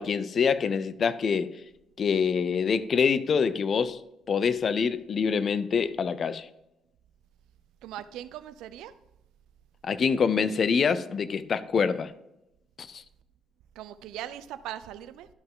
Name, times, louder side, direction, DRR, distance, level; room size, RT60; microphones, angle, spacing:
voice 1, 0.0-1.5 2.0-4.0 4.3-6.5 9.8-12.1 12.8-13.0, left 6 dB, 45° left, 15 dB, 0.5 m, -25 dB
voice 2, 7.8-8.9 13.8-15.3, right 12 dB, 90° right, 13 dB, 0.5 m, -40 dB
12.0 x 5.5 x 3.8 m, 0.88 s
cardioid pair, 100°, 0 cm